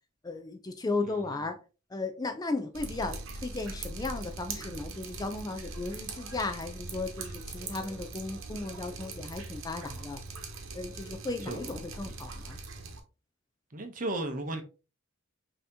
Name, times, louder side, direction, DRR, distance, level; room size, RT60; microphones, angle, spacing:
voice 1, 0.2-1.6 1.9-10.2 10.7-12.6, left 3 dB, 20° left, 0.3 m, -35 dB
Drip, 2.7-13.0, right 3 dB, 75° right, 0.9 m, -41 dB
voice 2, 13.7-14.6, right 2 dB, 40° right, 0.8 m, -34 dB
5.5 x 2.8 x 2.7 m
head